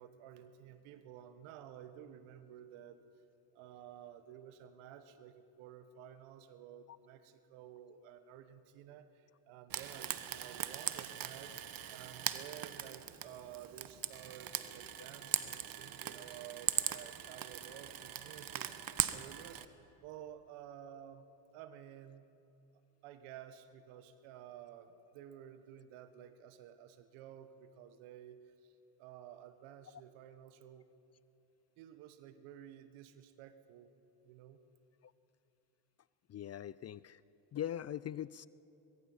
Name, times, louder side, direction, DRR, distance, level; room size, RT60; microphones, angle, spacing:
voice 1, 0.0-3.0 3.5-19.7 20.0-21.2 21.5-22.2 23.0-28.7 29.0-30.9 31.8-33.9 34.2-34.6, right 10 dB, 75° right, 11 dB, 1.4 m, -53 dB
Frying (food), 9.7-19.6, right 10 dB, 45° right, 1.2 m, -40 dB
voice 2, 36.3-37.2 37.5-38.5, left 10 dB, 35° left, 19 dB, 0.4 m, -41 dB
22.0 x 22.0 x 5.7 m, 2.9 s
hypercardioid pair, 65°, 49 cm